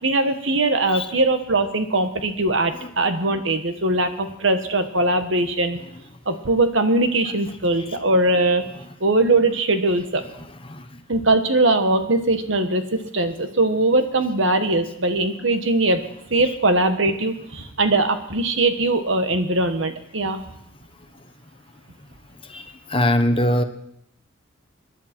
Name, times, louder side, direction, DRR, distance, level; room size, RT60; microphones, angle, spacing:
voice 1, 0.0-5.8 6.2-8.6 9.0-10.2 11.1-16.0 16.3-20.4, right 2 dB, 70° right, 7 dB, 1.5 m, -21 dB
voice 2, 10.6-11.0 22.4-23.6, left 1 dB, 25° left, 8 dB, 1.0 m, -22 dB
26.0 x 11.0 x 4.5 m, 0.74 s
head